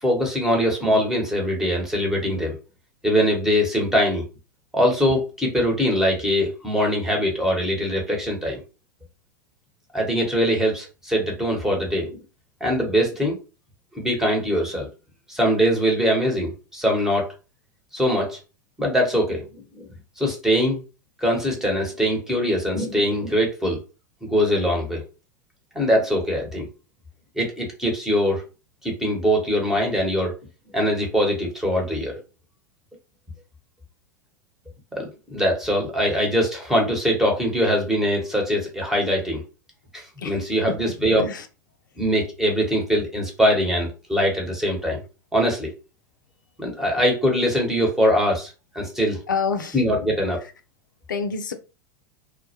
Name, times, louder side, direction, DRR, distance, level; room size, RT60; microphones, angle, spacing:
voice 1, 0.0-2.5 3.0-4.2 4.7-8.6 9.9-12.2 12.6-13.4 13.9-14.9 15.3-17.3 17.9-18.4 18.8-19.9 20.2-20.8 21.2-23.8 24.2-25.0 25.7-26.7 27.4-28.4 28.8-30.4 30.7-32.2 35.0-39.4 39.9-41.3 42.0-45.0 45.3-45.7 46.6-48.5 48.7-49.2 49.7-50.4, equal, 5° right, 1.0 m, -22 dB
voice 2, 40.8-41.4 49.3-50.0 51.1-51.5, left 5 dB, 75° left, 0.4 m, -28 dB
2.2 x 2.1 x 2.8 m
figure-of-eight pair, 90°, 10 cm